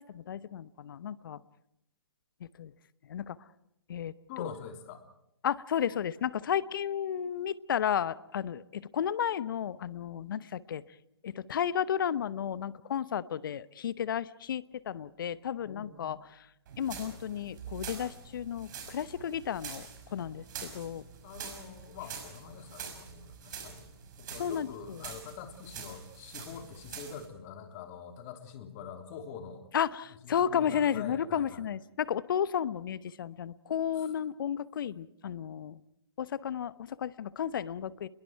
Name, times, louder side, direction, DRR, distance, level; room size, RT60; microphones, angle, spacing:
voice 1, 0.0-1.4 2.6-2.7 3.1-3.4 3.9-4.5 5.4-10.8 11.2-16.2 16.8-19.9 20.1-21.0 24.4-25.0 29.7-35.8 36.2-38.1, left 9 dB, 55° left, 17 dB, 0.9 m, -33 dB
voice 2, 4.3-5.0 15.6-16.1 21.2-23.9 24.2-29.6 30.1-31.7 33.9-34.1, left 7 dB, 35° left, 5 dB, 3.4 m, -45 dB
sound 1, 16.7-27.3, right 7 dB, 45° right, 5.7 m, -45 dB
30.0 x 22.0 x 4.6 m, 0.80 s
figure-of-eight pair, 130°, 13 cm